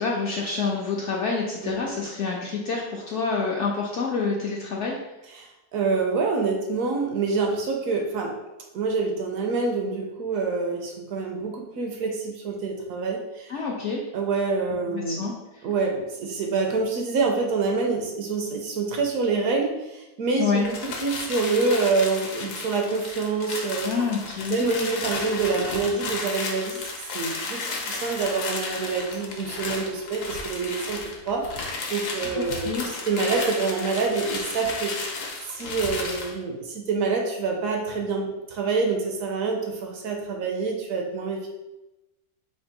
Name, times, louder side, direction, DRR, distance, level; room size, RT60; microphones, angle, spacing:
voice 1, 0.0-5.0 13.5-14.0 14.9-15.3 20.4-20.7 23.8-24.6 32.4-32.9, left 4 dB, 70° left, -2 dB, 0.7 m, -27 dB
voice 2, 5.3-8.3 8.7-13.5 14.1-15.3 15.6-24.1 24.5-26.8 27.1-31.0 31.3-35.2 35.5-41.5, right 4 dB, 70° right, 2 dB, 0.9 m, -26 dB
sound 1, 20.6-36.3, left 3 dB, 85° left, 1.2 m, -33 dB
3.5 x 2.4 x 3.9 m, 1.0 s
omnidirectional pair, 1.6 m